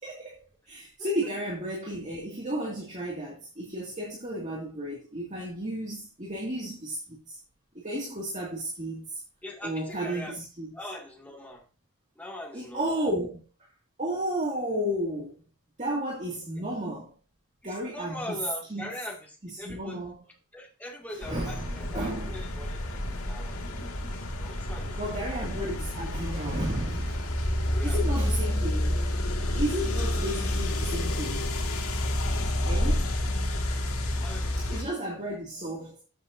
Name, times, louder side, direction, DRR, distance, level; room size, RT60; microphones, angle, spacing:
voice 1, 0.0-7.4 7.7-9.2 9.6-10.8 12.5-13.4 14.0-15.4 15.8-17.1 17.6-18.4 18.7-18.9 19.4-20.2 21.1-22.4 23.0-24.2 25.0-27.2 27.8-29.0 29.5-31.4 32.7-33.1 34.6-36.0, right 1 dB, 35° right, 2.1 m, -33 dB
voice 2, 9.4-10.4 10.7-11.6 12.2-13.0 17.6-20.0 20.5-22.8 23.2-23.7 24.4-25.7 27.7-28.2 32.8-33.0 34.2-35.0, left 1 dB, 5° left, 2.1 m, -42 dB
sound 1, 21.2-34.8, left 1 dB, 75° left, 2.0 m, -29 dB
13.5 x 7.4 x 2.6 m
head